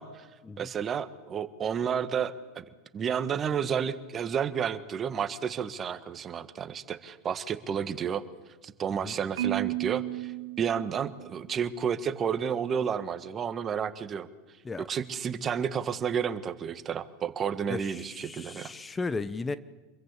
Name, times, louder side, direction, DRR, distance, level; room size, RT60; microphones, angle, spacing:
voice 1, 0.6-2.6 2.9-8.2 8.6-14.3 14.9-18.7, right 7 dB, 35° right, 12 dB, 1.7 m, -31 dB
Marimba xylophone, 9.4-11.6, right 16 dB, 70° right, 1.6 m, -33 dB
voice 2, 17.7-19.6, left 3 dB, 15° left, 15 dB, 1.0 m, -35 dB
26.5 x 22.5 x 8.3 m, 1.2 s
hypercardioid pair, 90°, 0 cm